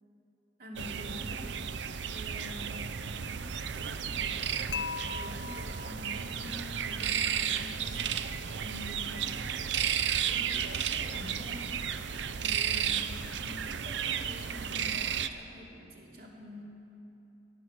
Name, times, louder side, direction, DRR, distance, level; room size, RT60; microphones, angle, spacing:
voice 1, 0.6-1.8 2.1-9.7 10.2-11.8 12.2-16.6, left 1 dB, 60° right, -2 dB, 2.9 m, -46 dB
sound 1, 0.8-15.3, right 8 dB, 80° right, 0.6 m, -33 dB
Dishes pots and pans / Chink clink, 4.7-6.8, left 6 dB, 75° left, 0.5 m, -40 dB
18.5 x 12.0 x 6.3 m, 2.9 s
head